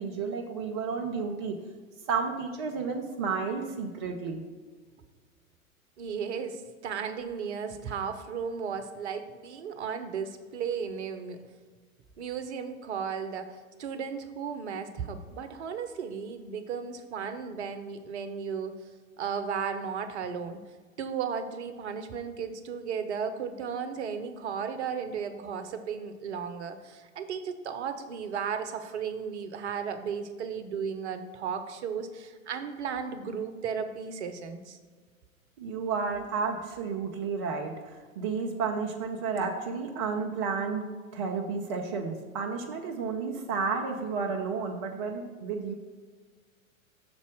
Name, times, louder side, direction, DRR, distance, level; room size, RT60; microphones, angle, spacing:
voice 1, 0.0-1.6 2.1-4.4 35.6-45.7, right 5 dB, 20° right, 2 dB, 0.3 m, -32 dB
voice 2, 6.0-11.4 12.2-18.7 19.2-20.6 21.0-34.8, right 6 dB, 55° right, 9 dB, 0.8 m, -35 dB
6.8 x 4.1 x 6.1 m, 1.5 s
figure-of-eight pair, 100°, 41 cm